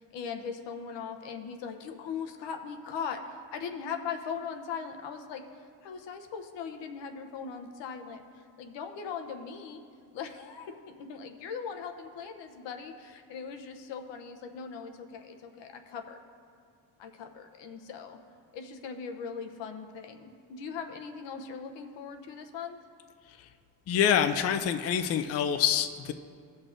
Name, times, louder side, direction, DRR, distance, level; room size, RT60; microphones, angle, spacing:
voice 1, 0.0-8.2 8.6-9.8 10.1-16.2 17.0-18.2 18.5-22.8, left 6 dB, 80° left, 5 dB, 0.9 m, -39 dB
voice 2, 23.9-26.1, left 8 dB, 35° left, 8 dB, 0.4 m, -26 dB
17.0 x 6.4 x 2.5 m, 2.2 s
cardioid pair, 110°, 43 cm